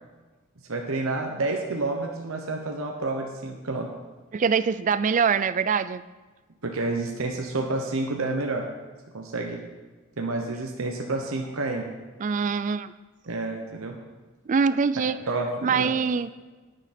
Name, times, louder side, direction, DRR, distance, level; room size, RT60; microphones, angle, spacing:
voice 1, 0.7-3.9 6.6-8.6 9.1-9.6 10.2-11.9 13.3-14.0 15.3-15.9, right 2 dB, 85° right, 2 dB, 1.1 m, -29 dB
voice 2, 4.3-6.0 12.2-12.9 14.5-15.2 15.6-16.3, right 6 dB, 35° right, 15 dB, 0.3 m, -24 dB
10.0 x 9.8 x 4.3 m, 1.2 s
head